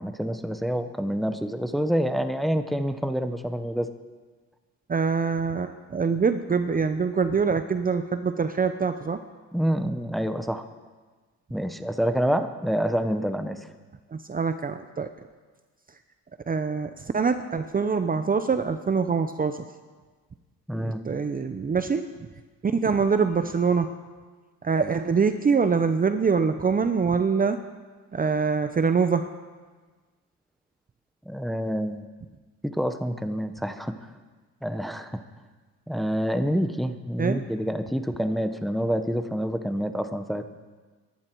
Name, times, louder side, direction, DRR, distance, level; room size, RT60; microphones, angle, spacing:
voice 1, 0.0-3.9 9.5-10.7 11.5-13.6 20.7-21.0 31.3-32.1 32.6-34.0 34.6-35.2 35.9-40.5, equal, ahead, 9 dB, 1.1 m, -27 dB
voice 2, 4.9-9.2 14.1-15.1 16.5-19.6 20.7-22.1 22.6-23.9 24.6-27.6 28.1-29.3 37.2-37.4, right 5 dB, 30° right, 9 dB, 0.8 m, -24 dB
22.0 x 11.5 x 4.7 m, 1.4 s
cardioid pair, 90°, 30 cm